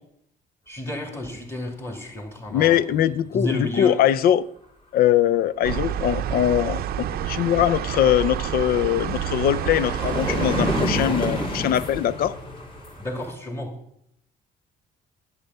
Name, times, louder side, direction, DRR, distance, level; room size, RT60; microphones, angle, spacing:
voice 1, 0.7-4.0 13.0-13.8, left 1 dB, 15° left, 4 dB, 2.3 m, -31 dB
voice 2, 2.5-4.5 4.9-12.4, left 11 dB, 60° left, 18 dB, 0.5 m, -22 dB
sound 1, 5.6-10.8, right 10 dB, 65° right, 0.6 m, -28 dB
sound 2, 7.2-7.3 7.6-13.3, equal, 35° left, 2.8 m, -29 dB
10.5 x 8.0 x 5.5 m, 0.73 s
cardioid pair, 110°, 17 cm